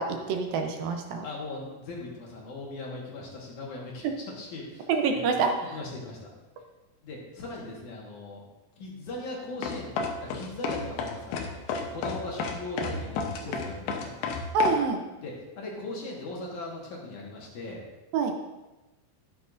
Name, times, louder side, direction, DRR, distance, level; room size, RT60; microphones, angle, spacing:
voice 1, 0.0-1.2 4.0-4.1 4.9-5.8 13.5-13.6 14.5-15.0 18.1-18.3, right 4 dB, 75° right, 4 dB, 2.4 m, -26 dB
voice 2, 1.2-5.4 5.7-6.3 7.0-8.4 8.8-9.9 10.2-14.1 15.2-17.8, left 2 dB, 60° left, -3 dB, 2.7 m, -39 dB
sound 1, 9.6-14.8, left 5 dB, 80° left, 2.8 m, -31 dB
12.0 x 10.5 x 2.6 m, 1.1 s
omnidirectional pair, 4.4 m